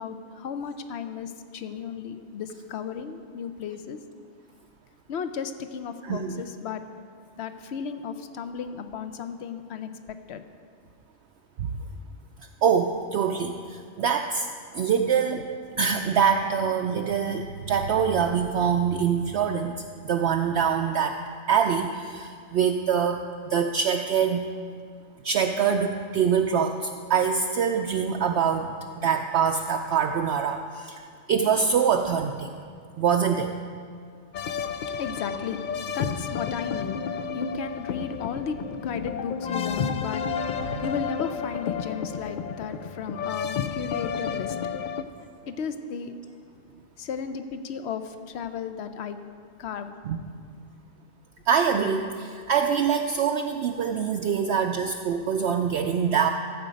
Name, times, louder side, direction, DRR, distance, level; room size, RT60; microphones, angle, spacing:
voice 1, 0.0-4.0 5.1-6.8 7.4-9.9 10.3-10.4 34.9-35.6 35.9-44.6 45.2-46.1 47.0-49.2 49.6-49.9, left 6 dB, 65° left, 9 dB, 0.8 m, -34 dB
voice 2, 6.0-6.4 11.6-11.7 12.6-14.5 14.7-15.4 15.8-19.7 20.0-21.2 21.5-24.5 25.2-28.7 29.0-31.0 31.3-32.5 33.0-33.5 40.6-40.8 50.0-50.2 51.5-56.3, right 7 dB, 65° right, 4 dB, 0.7 m, -24 dB
sound 1, 34.3-45.0, left 6 dB, 90° left, 0.4 m, -31 dB
14.0 x 7.7 x 5.1 m, 2.1 s
omnidirectional pair, 1.4 m